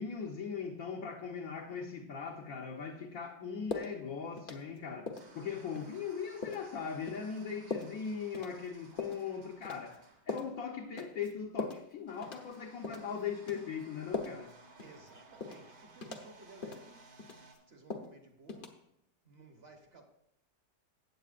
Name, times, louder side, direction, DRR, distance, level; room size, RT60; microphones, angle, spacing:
voice 1, 0.0-14.5, left 6 dB, 60° left, 0 dB, 1.2 m, -40 dB
sound 1, 3.5-17.6, right 3 dB, 75° right, 2.0 m, -60 dB
sound 2, 3.7-3.9 4.4-4.8 5.1-5.3 5.8-5.9 6.4-6.7 7.1-7.2 7.7-7.9 8.3-8.5 9.0-9.2 9.6-10.0 10.3-10.5 11.0-11.3 11.6-11.8 12.2-12.6 12.8-13.1 13.5-13.6 14.1-14.5 14.8-14.9 15.4-15.6 16.0-16.3 16.6-16.8 17.2-17.6 17.9-18.1 18.5-18.7, left 3 dB, 40° left, 0.9 m, -40 dB
voice 2, 14.8-17.1 17.7-18.8 19.2-20.0, right 2 dB, 40° right, 3 dB, 1.2 m, -56 dB
15.0 x 8.7 x 2.5 m, 0.76 s
omnidirectional pair, 1.8 m